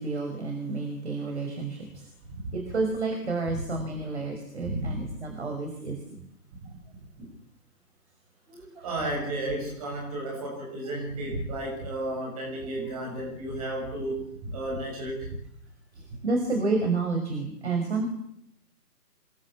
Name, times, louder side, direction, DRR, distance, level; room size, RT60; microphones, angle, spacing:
voice 1, 0.0-2.1 2.5-6.2 8.5-8.9 15.9-18.1, right 3 dB, 40° right, 4 dB, 5.5 m, -30 dB
voice 2, 4.6-5.0 7.2-7.3 8.8-15.3, right 1 dB, 20° right, -1 dB, 6.9 m, -33 dB
27.5 x 22.0 x 8.5 m, 0.75 s
figure-of-eight pair, 150°, 49 cm